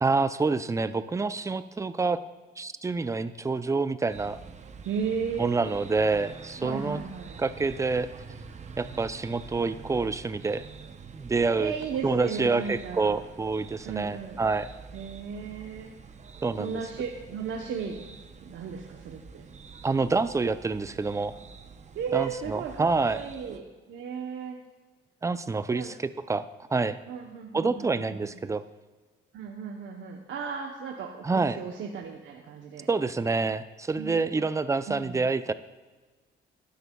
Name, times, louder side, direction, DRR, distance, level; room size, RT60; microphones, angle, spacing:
voice 1, 0.0-2.2 2.6-4.4 5.4-7.0 7.4-8.1 8.8-10.6 11.1-11.7 12.0-14.7 16.4-16.8 19.8-21.3 22.1-23.2 25.2-25.9 26.3-26.5 26.7-27.0 27.5-28.6 31.2-31.6 32.9-35.5, right 4 dB, 15° right, 13 dB, 0.4 m, -27 dB
sound 1, 4.1-23.6, right 5 dB, 35° right, 0.7 m, -46 dB
voice 2, 4.8-5.8 6.6-7.4 11.6-13.2 13.8-14.4 14.9-15.9 16.6-18.0 18.4-19.5 21.9-22.9 23.1-24.6 25.7-25.9 27.1-28.3 29.3-32.9 34.0-34.4 34.9-35.2, right 6 dB, 70° right, 1 dB, 0.9 m, -35 dB
12.5 x 10.0 x 2.3 m, 1.3 s
cardioid pair, 90°, 20 cm